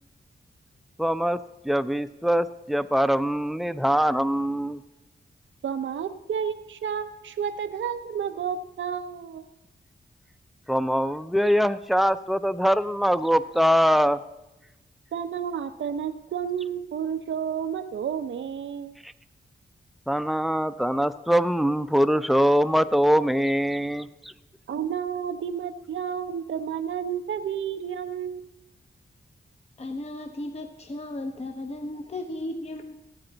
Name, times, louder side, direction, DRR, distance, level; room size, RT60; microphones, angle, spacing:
voice 1, 1.0-1.4 1.6-4.8 10.7-14.2 19.0-19.1 20.1-24.3, equal, ahead, 12 dB, 0.4 m, -23 dB
voice 2, 5.6-9.5 15.1-19.0 24.7-28.5, right 8 dB, 90° right, 9 dB, 0.6 m, -31 dB
voice 3, 29.8-32.9, left 1 dB, 35° left, 6 dB, 0.7 m, -35 dB
16.0 x 8.7 x 3.9 m, 0.95 s
wide cardioid pair, 80°, 19 cm